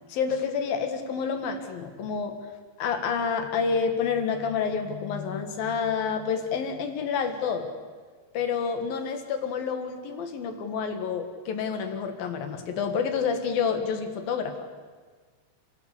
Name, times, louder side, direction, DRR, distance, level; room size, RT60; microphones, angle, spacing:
voice 1, 0.1-2.4 2.8-7.7 8.3-14.7, left 6 dB, 60° left, 6 dB, 3.1 m, -28 dB
29.5 x 17.0 x 8.3 m, 1.5 s
omnidirectional pair, 5.3 m